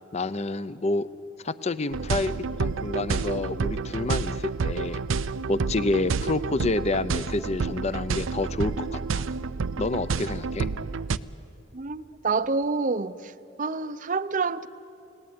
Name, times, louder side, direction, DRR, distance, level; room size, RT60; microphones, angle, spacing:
voice 1, 0.1-1.1 1.4-5.0 5.5-9.2 9.8-10.7, left 2 dB, 35° left, 0.6 m, -28 dB
sound 1, 1.9-11.2, right 4 dB, 85° right, 0.6 m, -29 dB
voice 2, 11.7-13.3 13.6-14.7, right 4 dB, 40° right, 0.6 m, -27 dB
29.5 x 18.5 x 9.6 m
head